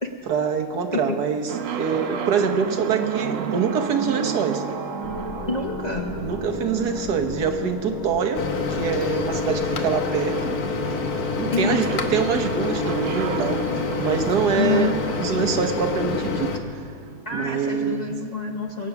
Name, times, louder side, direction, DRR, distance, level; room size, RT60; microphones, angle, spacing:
voice 1, 0.3-1.5 1.8-4.6 6.2-8.4 8.7-10.5 11.4-13.6 14.0-14.9 15.2-16.8 17.3-18.2, right 6 dB, 75° right, 5 dB, 1.6 m, -25 dB
sound 1, 1.5-17.3, right 6 dB, 60° right, 1.0 m, -33 dB
sound 2, 5.0-10.3, left 6 dB, 85° left, 1.6 m, -35 dB
voice 2, 5.5-6.1 11.5-11.9 14.5-14.9 17.3-18.9, left 4 dB, 35° left, 0 dB, 0.7 m, -27 dB
Microwave oven, 8.3-16.6, left 4 dB, 70° left, 1.5 m, -27 dB
22.0 x 8.5 x 5.9 m, 2.2 s
omnidirectional pair, 1.7 m